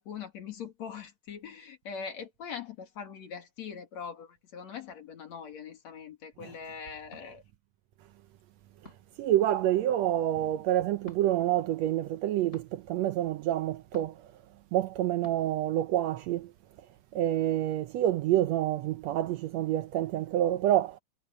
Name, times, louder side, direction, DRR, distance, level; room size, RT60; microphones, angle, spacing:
voice 1, 0.0-7.4, left 7 dB, 60° left, 3.2 m, -42 dB
sound 1, 7.1-7.3 8.8-9.2 11.0-11.2 12.5-12.7 13.9-14.3 15.2-15.4, equal, 20° left, 7.2 m, -49 dB
voice 2, 9.2-14.2 14.7-16.5 17.1-21.0, right 12 dB, 75° right, 1.6 m, -27 dB
omnidirectional pair, 3.7 m